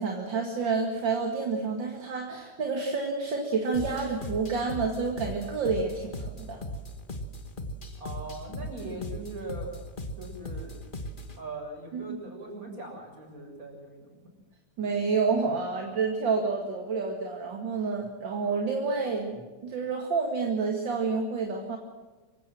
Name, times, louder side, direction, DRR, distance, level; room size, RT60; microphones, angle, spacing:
voice 1, 0.0-6.6 11.9-12.2 14.8-21.8, right 4 dB, 40° right, 2 dB, 2.4 m, -29 dB
sound 1, 3.7-11.4, equal, 35° left, 0.7 m, -39 dB
voice 2, 8.0-9.8 10.2-10.8 11.4-14.1, right 2 dB, 25° right, 1 dB, 7.1 m, -40 dB
25.5 x 16.0 x 7.7 m, 1.3 s
omnidirectional pair, 3.7 m